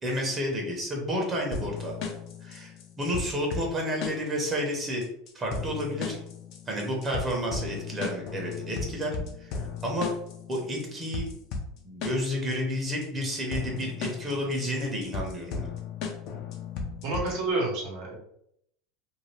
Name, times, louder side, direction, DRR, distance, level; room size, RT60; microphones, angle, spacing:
voice 1, 0.0-2.0 2.4-5.0 5.3-6.2 6.7-10.1 10.5-11.3 11.8-15.7, equal, 25° right, -1 dB, 0.9 m, -31 dB
sound 1, 1.5-17.5, left 5 dB, 55° left, 0.6 m, -36 dB
voice 2, 17.0-18.2, right 2 dB, 65° right, -1 dB, 1.0 m, -29 dB
2.7 x 2.3 x 3.2 m, 0.74 s
supercardioid pair, 130°, 0 cm